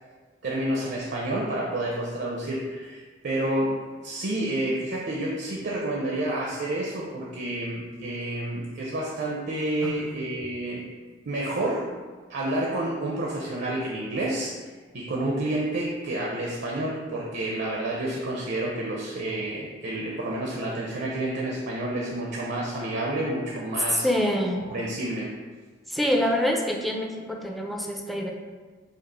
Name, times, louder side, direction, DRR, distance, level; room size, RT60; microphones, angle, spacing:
voice 1, 0.4-10.8 11.2-11.9 12.3-24.1 24.7-25.3, right 1 dB, 60° right, -3 dB, 0.6 m, -29 dB
voice 2, 23.9-24.6 25.9-28.3, equal, ahead, 1 dB, 0.4 m, -26 dB
5.2 x 2.5 x 4.1 m, 1.4 s
head